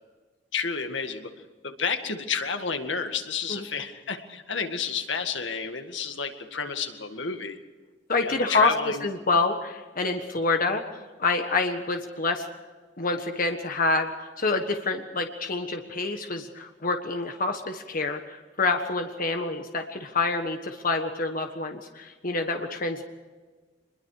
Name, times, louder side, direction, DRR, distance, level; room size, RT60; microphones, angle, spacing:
voice 1, 0.5-1.3 1.6-7.6 8.2-9.0, left 5 dB, 75° left, 6 dB, 2.0 m, -31 dB
voice 2, 8.1-10.8 11.2-12.5 13.0-14.1 14.4-23.0, left 3 dB, 45° left, 5 dB, 1.5 m, -27 dB
25.0 x 22.0 x 4.9 m, 1.4 s
head